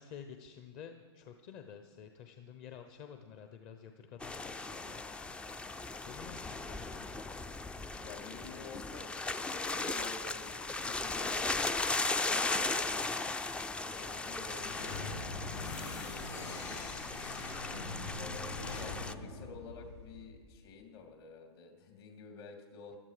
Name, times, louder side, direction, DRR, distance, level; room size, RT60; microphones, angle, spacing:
voice 1, 0.0-5.0 6.0-7.1 18.3-18.5, left 8 dB, 40° left, 7 dB, 0.9 m, -51 dB
sound 1, 4.2-19.1, left 3 dB, 5° left, 0.3 m, -37 dB
voice 2, 7.9-13.1 13.5-15.3 15.6-17.2 18.1-23.0, left 4 dB, 60° left, 3 dB, 2.8 m, -50 dB
sound 2, 14.2-20.4, left 3 dB, 80° left, 3.2 m, -43 dB
14.5 x 12.0 x 5.0 m, 1.5 s
hypercardioid pair, 120°, 15 cm